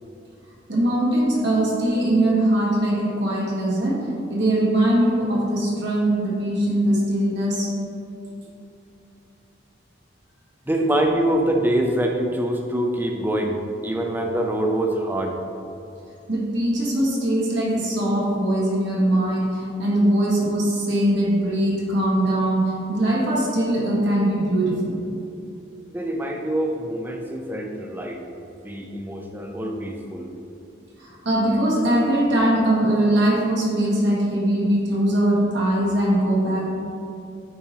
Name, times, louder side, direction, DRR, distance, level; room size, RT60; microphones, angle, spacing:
voice 1, 0.7-4.0 4.3-7.7 16.3-25.0 31.0-36.7, right 1 dB, 65° right, -4 dB, 1.4 m, -21 dB
voice 2, 10.7-15.4 25.9-28.2 28.6-30.3, right 1 dB, 10° right, 2 dB, 0.5 m, -24 dB
8.5 x 4.3 x 2.8 m, 2.8 s
head